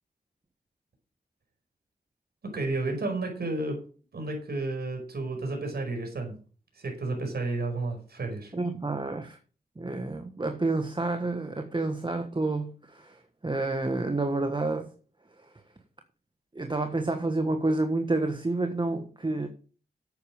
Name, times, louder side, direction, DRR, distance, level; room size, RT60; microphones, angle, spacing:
voice 1, 2.5-3.8 4.1-6.3 6.7-8.5, right 2 dB, 75° right, 5.1 m, -31 dB
voice 2, 8.5-9.4 9.8-14.9 16.5-19.5, right 2 dB, 30° right, 1.5 m, -29 dB
10.5 x 8.6 x 5.0 m
cardioid pair, 55°, 16 cm